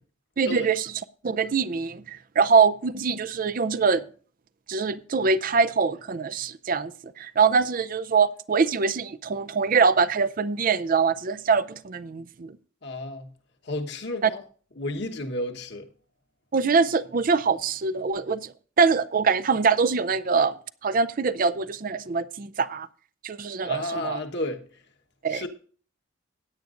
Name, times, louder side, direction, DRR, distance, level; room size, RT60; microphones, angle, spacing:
voice 1, 0.4-0.9 1.2-4.0 4.7-6.9 7.2-12.6 14.2-14.3 16.5-20.5 20.8-22.9 23.2-24.2 25.2-25.4, right 5 dB, 40° right, 0.4 m, -23 dB
voice 2, 12.8-13.3 13.6-14.4 14.8-15.9 23.6-24.7 25.3-25.5, left 1 dB, 55° left, 1.3 m, -32 dB
16.0 x 9.2 x 2.5 m
head